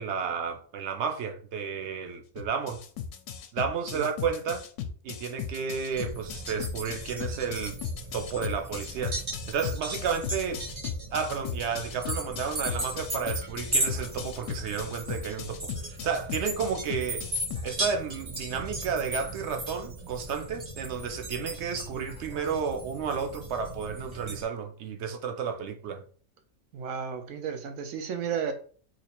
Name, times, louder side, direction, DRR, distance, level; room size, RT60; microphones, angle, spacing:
voice 1, 0.0-2.8 3.5-4.6 5.0-7.7 8.1-9.2 9.5-10.6 11.1-17.3 17.6-26.0, right 6 dB, 65° right, 0.8 m, -32 dB
sound 1, 2.4-17.9, left 9 dB, 75° left, 0.9 m, -36 dB
sound 2, 5.9-24.4, right 1 dB, 30° right, 0.6 m, -37 dB
voice 2, 26.7-28.5, right 7 dB, 90° right, 1.0 m, -33 dB
2.9 x 2.5 x 4.2 m
omnidirectional pair, 1.3 m